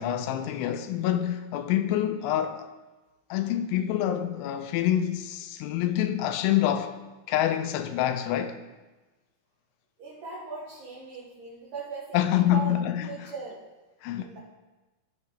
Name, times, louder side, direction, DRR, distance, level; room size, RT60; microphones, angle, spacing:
voice 1, 0.0-2.7 3.3-6.9 7.3-8.6 12.1-13.3 14.0-14.4, left 11 dB, 85° left, 3.0 m, -26 dB
voice 2, 10.0-12.7 13.0-13.6 14.1-14.4, right 4 dB, 55° right, 2.7 m, -39 dB
15.0 x 7.0 x 3.3 m
omnidirectional pair, 5.4 m